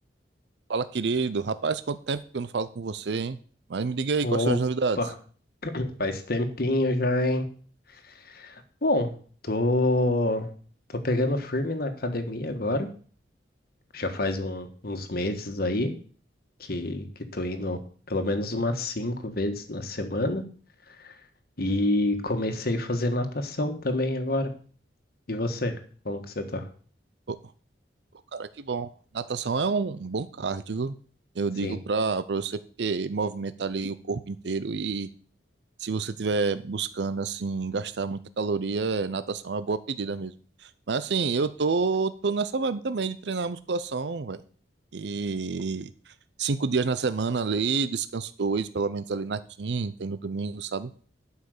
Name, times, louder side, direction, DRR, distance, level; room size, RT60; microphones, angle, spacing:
voice 1, 0.7-3.4 3.7-5.0 27.3-27.4 28.3-30.9 31.4-35.1 35.8-40.3 40.6-44.4 44.9-45.9 46.4-50.9, right 4 dB, 70° right, 14 dB, 0.6 m, -28 dB
voice 2, 4.2-4.6 5.0-5.1 5.6-7.5 8.1-9.1 9.4-10.5 11.0-12.9 13.9-15.9 16.6-17.1 17.3-17.8 18.1-20.4 21.0-21.1 21.6-24.5 25.3-25.7 26.0-26.7 31.6-31.8, left 1 dB, 55° left, 6 dB, 1.6 m, -27 dB
11.5 x 5.6 x 6.6 m, 0.43 s
head